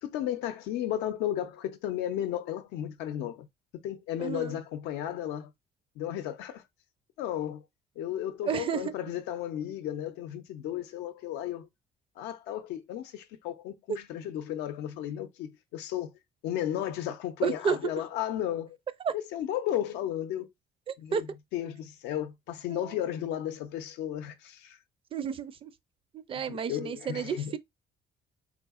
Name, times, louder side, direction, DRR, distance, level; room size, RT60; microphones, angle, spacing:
voice 1, 0.0-3.5 3.7-5.5 6.0-6.6 7.2-7.6 8.0-11.7 12.2-16.1 16.4-18.8 19.1-20.5 21.0-24.8 26.3-27.5, left 11 dB, 90° left, 0.6 m, -34 dB
voice 2, 4.2-4.6 8.4-8.9 17.4-17.8 19.0-19.1 20.9-21.2 22.7-23.1 25.1-25.7 26.1-27.6, right 7 dB, 35° right, 0.4 m, -32 dB
3.7 x 2.7 x 2.4 m
cardioid pair, 110°, 17 cm